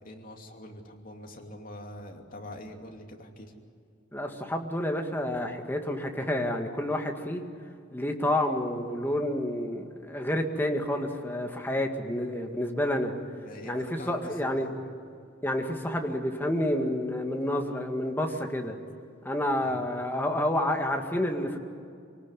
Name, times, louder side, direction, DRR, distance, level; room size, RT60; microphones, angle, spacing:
voice 1, 0.0-3.5 13.3-14.8 19.6-19.9, left 1 dB, 45° left, 2 dB, 2.8 m, -44 dB
voice 2, 4.1-7.4 7.9-13.1 13.7-14.7 15.4-18.8 19.2-21.6, left 1 dB, 10° left, 3 dB, 2.0 m, -29 dB
25.5 x 18.5 x 9.9 m, 2.4 s
head